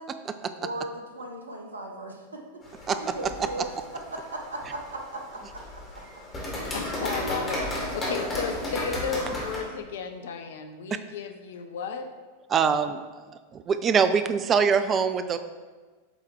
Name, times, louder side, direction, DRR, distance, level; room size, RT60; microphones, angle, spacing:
voice 1, 0.6-2.4 2.9-3.7 4.1-5.4 8.0-8.1, right 1 dB, 75° right, 2 dB, 0.9 m, -37 dB
sound 1, 2.6-9.6, left 1 dB, 20° left, 2.1 m, -34 dB
voice 2, 6.7-7.6 7.9-12.1, left 5 dB, 60° left, 7 dB, 0.6 m, -33 dB
voice 3, 12.5-13.0 13.5-15.4, right 6 dB, 25° right, 10 dB, 0.4 m, -23 dB
7.9 x 3.6 x 4.5 m, 1.4 s
figure-of-eight pair, 90°, 0 cm